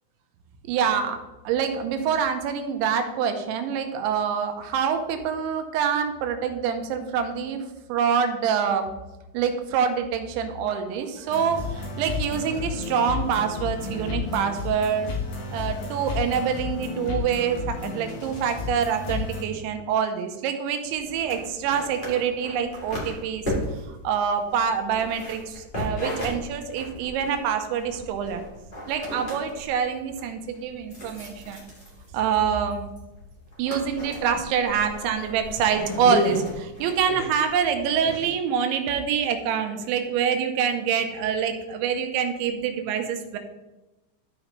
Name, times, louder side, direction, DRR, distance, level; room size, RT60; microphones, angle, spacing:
voice 1, 0.7-7.6 7.9-8.9 9.3-15.1 15.5-23.4 23.9-28.4 28.9-31.6 32.1-32.9 33.6-43.4, right 7 dB, 90° right, 6 dB, 3.2 m, -26 dB
sound 1, 11.3-19.4, left 4 dB, 65° left, 2.9 m, -32 dB
sound 2, 20.8-38.2, left 1 dB, 20° left, 1.2 m, -35 dB
13.0 x 5.2 x 3.1 m, 1.0 s
omnidirectional pair, 5.1 m